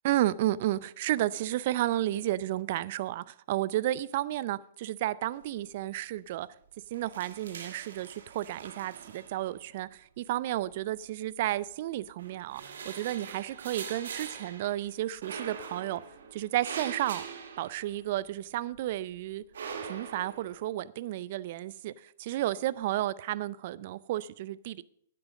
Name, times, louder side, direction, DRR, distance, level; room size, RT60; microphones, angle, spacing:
voice 1, 0.0-6.5 6.9-12.6 12.9-16.0 16.3-17.2 17.6-19.4 19.9-21.9 22.2-24.8, right 14 dB, 50° right, 0.4 m, -32 dB
sound 1, 5.4-5.9 6.2-6.3 6.7-9.8 10.7-11.6 12.1-18.4 18.7-20.6, right 6 dB, 70° right, 1.3 m, -43 dB
9.6 x 8.6 x 6.4 m
hypercardioid pair, 120°, 0 cm